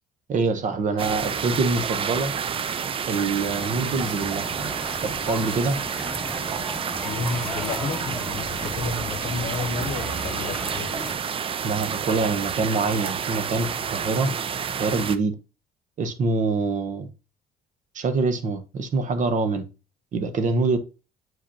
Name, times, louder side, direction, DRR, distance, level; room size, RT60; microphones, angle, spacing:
voice 1, 0.3-2.3 3.1-4.5 5.0-5.8 11.6-14.3 14.8-15.3 16.0-17.1 17.9-19.6 20.1-20.8, right 3 dB, 50° right, 0.9 m, -25 dB
sound 1, 1.0-15.2, right 7 dB, 35° right, 0.4 m, -29 dB
sound 2, 3.4-11.2, left 1 dB, 5° left, 1.4 m, -36 dB
voice 2, 7.0-10.9, left 4 dB, 60° left, 0.8 m, -31 dB
7.7 x 5.0 x 2.8 m
cardioid pair, 110°, 17 cm